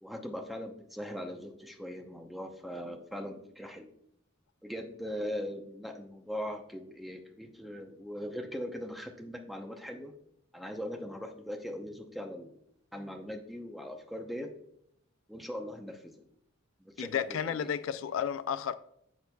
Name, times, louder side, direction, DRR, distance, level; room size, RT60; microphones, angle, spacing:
voice 1, 0.0-3.9 4.6-10.1 10.5-12.5 12.9-14.6 15.3-16.3 16.8-17.1 17.4-17.7, equal, ahead, 0.7 m, -40 dB
voice 2, 17.0-18.7, left 8 dB, 75° left, 0.3 m, -32 dB
10.5 x 7.0 x 2.3 m
head